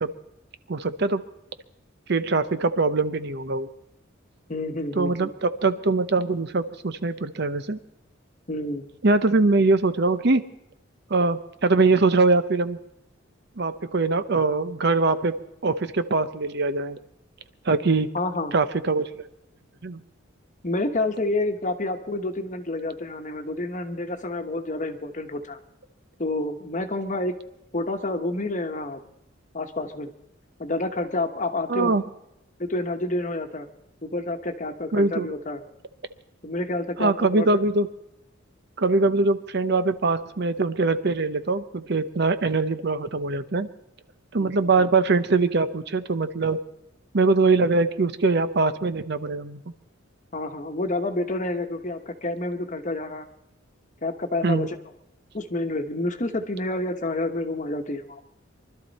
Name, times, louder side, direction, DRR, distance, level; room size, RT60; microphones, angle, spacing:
voice 1, 0.7-1.2 2.1-3.7 4.9-7.8 9.0-10.4 11.1-12.8 13.6-15.4 15.6-17.0 17.6-18.1 18.5-19.2 19.8-20.0 31.7-32.0 34.9-35.3 37.0-37.9 38.8-43.7 44.3-46.6 47.1-49.6 54.4-54.7, right 3 dB, 55° right, 11 dB, 0.8 m, -22 dB
voice 2, 4.5-5.3 8.5-8.9 18.1-18.5 20.6-25.6 26.2-27.4 27.7-29.0 29.5-30.1 30.6-31.9 32.6-33.7 34.0-35.6 36.4-37.5 44.3-44.9 50.3-53.3 54.0-54.8 55.3-58.2, left 2 dB, 40° left, 6 dB, 1.2 m, -29 dB
24.0 x 12.5 x 4.2 m, 0.83 s
head